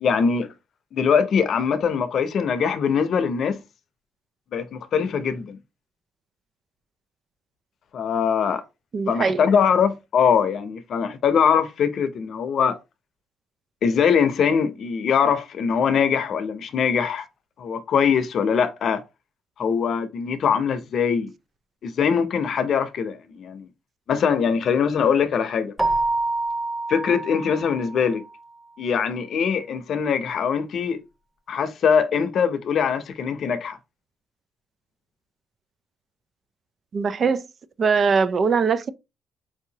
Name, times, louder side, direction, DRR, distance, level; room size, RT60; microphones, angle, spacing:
voice 1, 0.0-0.5 0.9-3.6 4.5-5.6 7.9-8.6 9.1-12.8 13.8-17.3 17.6-19.0 19.6-21.3 21.8-23.7 24.1-25.7 26.9-28.2 28.8-31.0 31.5-33.8, left 6 dB, 60° left, 0.6 m, -22 dB
voice 2, 8.9-9.4 36.9-37.4 37.8-38.9, right 5 dB, 50° right, 0.4 m, -21 dB
Keyboard (musical), 25.8-28.2, right 2 dB, 5° right, 0.7 m, -26 dB
4.8 x 2.8 x 2.8 m
cardioid pair, 90°, 0 cm